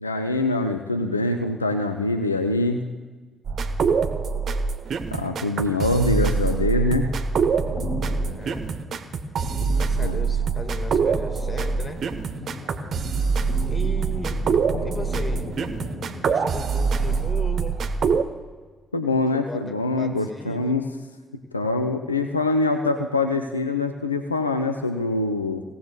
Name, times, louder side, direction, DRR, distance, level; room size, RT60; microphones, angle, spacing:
voice 1, 0.0-2.8 5.1-7.1 9.7-10.2 18.9-20.8 21.5-25.6, left 2 dB, 90° left, 7 dB, 0.5 m, -24 dB
sound 1, 3.5-18.2, right 5 dB, 50° right, 0.9 m, -24 dB
sound 2, 7.6-17.3, left 2 dB, 55° left, 3.6 m, -37 dB
voice 2, 8.2-8.6 9.8-12.0 12.5-12.7 13.0-13.2 13.7-14.4 14.8-15.5 16.1-17.8 19.3-20.8, left 2 dB, 25° left, 6 dB, 1.9 m, -37 dB
24.0 x 17.5 x 2.4 m, 1.4 s
figure-of-eight pair, 45°, 0 cm